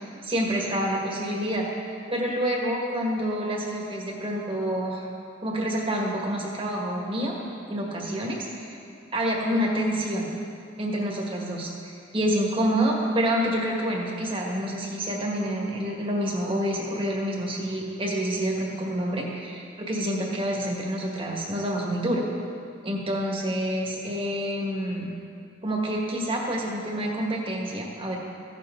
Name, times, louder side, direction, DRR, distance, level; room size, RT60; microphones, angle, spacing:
voice 1, 0.2-1.6 2.1-5.1 5.4-7.3 7.7-8.8 9.1-10.3 10.8-22.2 22.8-25.1 25.6-28.2, equal, 30° right, -2 dB, 1.7 m, -27 dB
16.0 x 7.2 x 3.8 m, 2.4 s
head